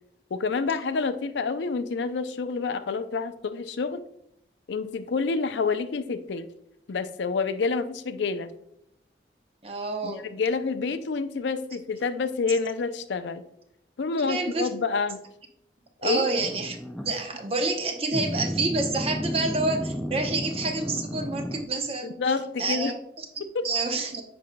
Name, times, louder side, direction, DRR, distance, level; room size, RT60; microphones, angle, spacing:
voice 1, 0.3-4.0 4.7-6.5 6.9-8.5 10.0-13.4 14.0-15.2 16.0-16.2 22.0-22.9 23.4-23.7, left 4 dB, 75° left, 11 dB, 0.4 m, -28 dB
voice 2, 9.6-10.3 14.2-14.7 16.0-16.8 17.0-22.2 22.6-23.3 23.6-24.2, right 3 dB, 30° right, 4 dB, 0.7 m, -28 dB
sound 1, 16.4-17.2 18.1-21.6, equal, ahead, 0.3 m, -32 dB
8.4 x 5.2 x 2.2 m, 0.75 s
head